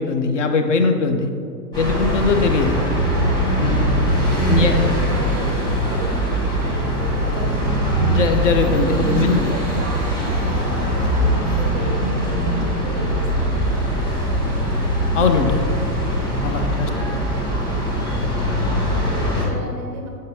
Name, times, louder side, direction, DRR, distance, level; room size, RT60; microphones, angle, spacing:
voice 1, 0.0-1.3 1.8-2.8 3.6-3.9 4.5-4.7 8.0-9.5 15.1-15.6 16.4-16.9, left 4 dB, 50° left, 6 dB, 0.6 m, -20 dB
sound 1, 1.7-19.4, equal, 10° left, 1.2 m, -21 dB
voice 2, 3.9-8.2 9.0-14.8 16.8-17.3 18.8-20.1, right 1 dB, 20° right, 1 dB, 0.5 m, -35 dB
6.6 x 6.4 x 2.7 m, 2.4 s
figure-of-eight pair, 110°, 50 cm